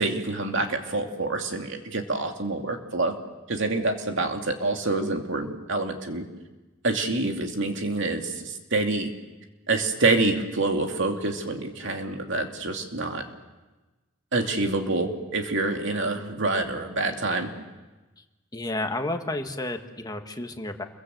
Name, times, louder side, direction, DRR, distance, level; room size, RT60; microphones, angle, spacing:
voice 1, 0.0-3.1 3.5-6.2 6.8-9.1 9.7-13.2 14.3-17.5, right 2 dB, 65° right, 3 dB, 2.7 m, -27 dB
voice 2, 18.5-20.8, left 2 dB, 20° left, 5 dB, 1.5 m, -31 dB
28.5 x 23.0 x 7.8 m, 1.2 s
head